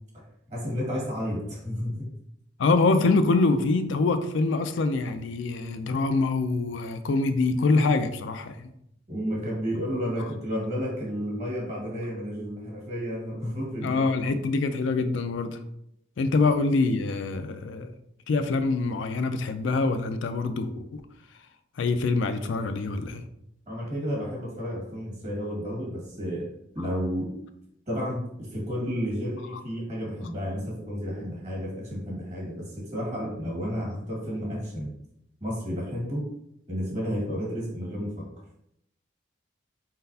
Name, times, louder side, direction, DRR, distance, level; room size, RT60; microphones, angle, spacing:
voice 1, 0.5-1.9 9.1-14.0 23.7-26.5 26.7-27.3 27.9-34.9 35.4-36.2 36.7-38.2, equal, 35° right, -3 dB, 1.6 m, -31 dB
voice 2, 2.6-8.7 13.8-15.6 16.2-17.9 18.3-21.0 21.8-23.2, left 3 dB, 70° left, 9 dB, 0.4 m, -25 dB
4.3 x 3.9 x 2.7 m, 0.76 s
head